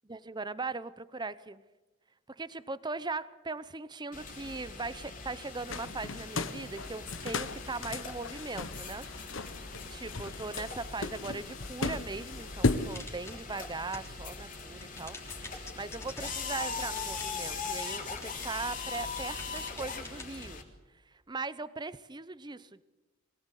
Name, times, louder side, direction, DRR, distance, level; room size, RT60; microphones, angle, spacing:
voice 1, 0.1-1.6 2.3-9.1 9.9-15.2 15.6-20.6 21.1-22.8, right 3 dB, 20° right, 15 dB, 0.7 m, -39 dB
sound 1, 4.1-20.6, left 4 dB, 40° left, 3.2 m, -41 dB
sound 2, 5.7-12.9, left 3 dB, 65° left, 1.2 m, -36 dB
sound 3, 12.9-14.3 14.6-20.2, left 2 dB, 15° left, 3.3 m, -48 dB
23.0 x 18.0 x 8.3 m, 1.1 s
head